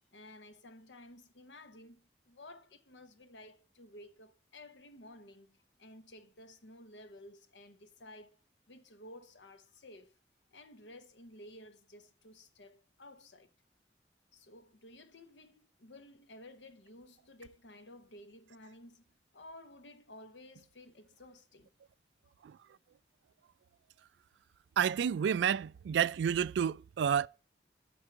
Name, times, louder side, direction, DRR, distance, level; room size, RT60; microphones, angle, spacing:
voice 1, 0.1-8.4 8.7-10.2 10.5-13.5 14.3-19.1 19.3-21.7, left 1 dB, 85° left, 0.9 m, -54 dB
voice 2, 24.8-27.3, right 8 dB, 80° right, 0.3 m, -30 dB
8.7 x 4.7 x 4.4 m
head